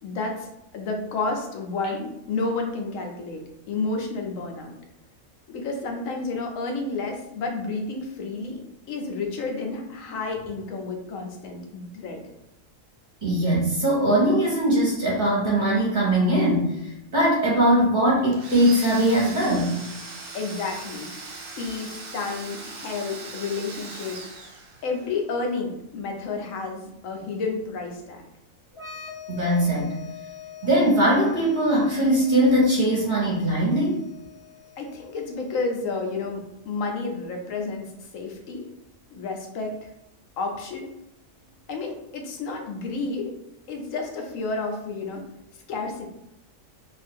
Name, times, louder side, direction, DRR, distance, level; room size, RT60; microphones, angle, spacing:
voice 1, 0.0-4.7 5.5-8.6 8.9-12.2 20.3-21.1 21.6-24.2 24.8-28.2 34.8-38.7 39.1-39.8 40.4-40.9 41.7-43.3 43.7-45.2 45.7-46.0, left 3 dB, 75° left, 2 dB, 1.0 m, -31 dB
voice 2, 13.2-19.8 29.3-30.0 30.6-34.0, right 1 dB, 40° right, -5 dB, 0.8 m, -21 dB
Domestic sounds home sounds, 18.3-25.1, right 3 dB, 65° right, 0.4 m, -39 dB
sound 1, 28.7-36.2, left 8 dB, 35° left, 0.5 m, -44 dB
2.6 x 2.3 x 3.4 m, 0.87 s
omnidirectional pair, 1.4 m